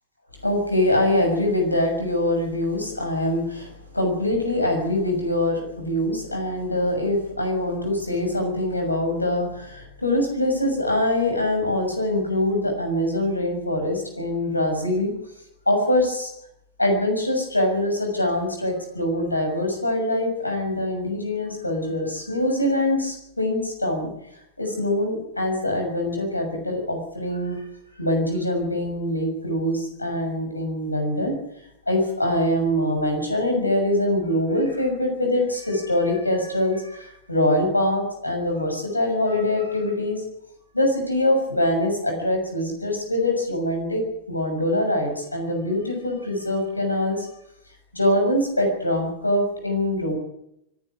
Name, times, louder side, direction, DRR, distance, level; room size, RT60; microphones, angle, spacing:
voice 1, 0.4-15.1 15.7-16.3 16.8-24.1 24.6-27.6 28.0-31.3 31.9-40.2 40.7-44.0 44.3-47.3 47.9-50.1, left 1 dB, 85° left, 3 dB, 6.7 m, -24 dB
24.5 x 11.0 x 9.9 m, 0.79 s
figure-of-eight pair, 90°, 0 cm